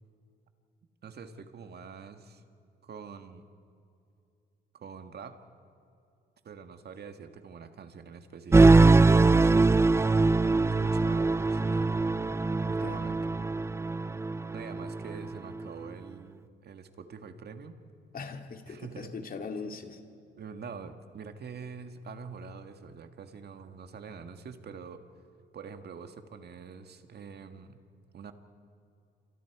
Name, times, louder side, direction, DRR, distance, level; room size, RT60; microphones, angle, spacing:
voice 1, 1.0-2.4 2.8-3.4 4.7-5.4 6.4-9.5 10.4-12.0 12.7-13.2 14.5-17.8 18.7-19.1 20.4-25.0 25.5-27.8 28.1-28.3, right 6 dB, 55° right, 8 dB, 1.8 m, -45 dB
sound 1, 8.5-15.3, right 3 dB, 15° right, 0.4 m, -22 dB
voice 2, 18.1-20.0, left 4 dB, 45° left, 5 dB, 2.3 m, -40 dB
29.0 x 25.5 x 4.9 m, 2.6 s
cardioid pair, 90°, 20 cm